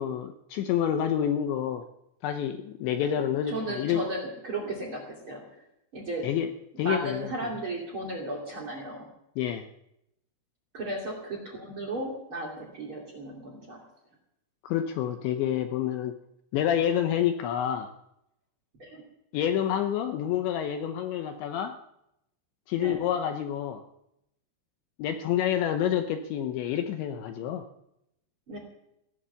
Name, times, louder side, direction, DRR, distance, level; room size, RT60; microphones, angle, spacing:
voice 1, 0.0-1.9 2.2-4.0 6.2-6.5 6.8-7.3 9.4-9.7 14.6-16.2 16.5-17.9 19.3-21.8 22.7-23.8 25.0-27.6, left 10 dB, 80° left, 7 dB, 2.8 m, -28 dB
voice 2, 3.5-5.6 5.9-6.3 6.7-9.1 10.7-13.9 18.8-19.0 22.8-23.0 28.5-28.6, right 1 dB, 35° right, 1 dB, 2.3 m, -35 dB
17.0 x 11.5 x 6.9 m, 0.81 s
omnidirectional pair, 5.9 m